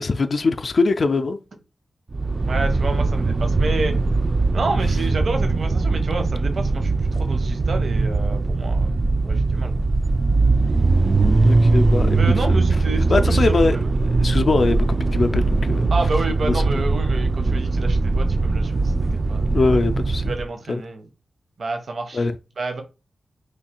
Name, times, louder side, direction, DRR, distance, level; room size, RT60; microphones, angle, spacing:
voice 1, 0.0-1.4 11.4-12.2 13.1-13.8 14.0-15.9 16.5-16.6 19.5-20.3 20.7-20.8 22.1-22.3, left 3 dB, 55° left, 0.4 m, -21 dB
sound 1, 2.1-20.5, right 3 dB, 40° right, 0.3 m, -20 dB
voice 2, 2.5-3.9 4.5-8.9 9.2-9.7 12.1-13.9 15.9-19.6 20.3-21.1 21.6-22.2 22.6-22.8, right 3 dB, 65° right, 0.7 m, -29 dB
3.2 x 2.3 x 4.3 m
wide cardioid pair, 85°, 0 cm